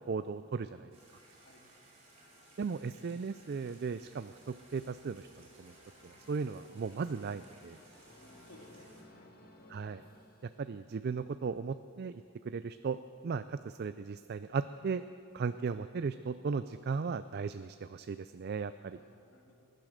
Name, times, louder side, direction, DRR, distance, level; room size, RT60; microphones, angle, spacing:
voice 1, 0.1-0.9 2.6-5.7 6.0-7.8 9.7-10.0 10.6-12.1 12.5-13.0 13.2-15.0 15.3-19.0, right 5 dB, 50° right, 12 dB, 0.4 m, -36 dB
sound 1, 0.9-9.0, right 1 dB, 30° right, 4.5 m, -60 dB
sound 2, 5.5-11.1, left 1 dB, 45° left, 1.7 m, -59 dB
voice 2, 8.2-9.3 15.5-15.6 18.8-19.5, left 1 dB, 75° left, -1 dB, 3.0 m, -59 dB
20.0 x 10.5 x 6.5 m, 2.3 s
head